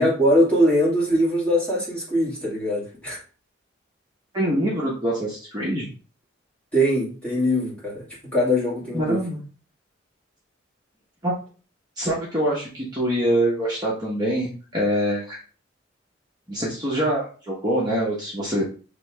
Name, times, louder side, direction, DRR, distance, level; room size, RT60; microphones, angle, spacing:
voice 1, 0.0-3.2 6.7-8.1 8.3-9.2, equal, 5° left, -6 dB, 1.6 m, -21 dB
voice 2, 4.3-5.9 8.9-9.4 11.2-11.3 12.0-15.4 16.5-18.6, right 1 dB, 20° right, -5 dB, 0.9 m, -24 dB
6.6 x 3.1 x 2.2 m, 0.38 s
head